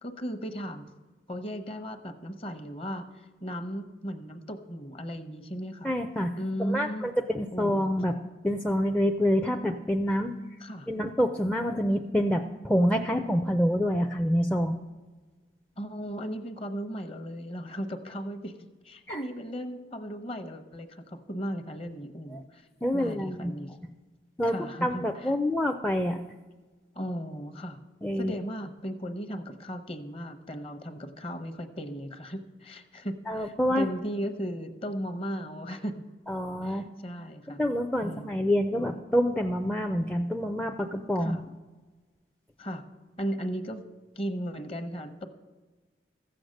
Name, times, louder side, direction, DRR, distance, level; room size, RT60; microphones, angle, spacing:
voice 1, 0.0-0.9 1.3-5.9 6.4-7.1 7.5-7.8 10.6-10.9 15.8-18.5 18.8-22.7 22.9-23.8 24.4-25.3 26.9-27.8 28.2-36.0 36.6-37.6 38.0-38.3 41.2-41.4 42.6-42.8 43.2-43.8 44.2-45.3, equal, 35° left, 8 dB, 0.9 m, -36 dB
voice 2, 5.8-6.3 6.6-8.2 8.4-10.3 10.9-14.8 19.1-19.2 22.3-22.4 22.8-23.8 24.4-24.5 24.8-26.2 28.0-28.3 33.3-33.9 36.3-36.9 37.6-41.4, equal, 5° left, 3 dB, 0.4 m, -27 dB
14.5 x 7.8 x 6.4 m, 1.3 s
head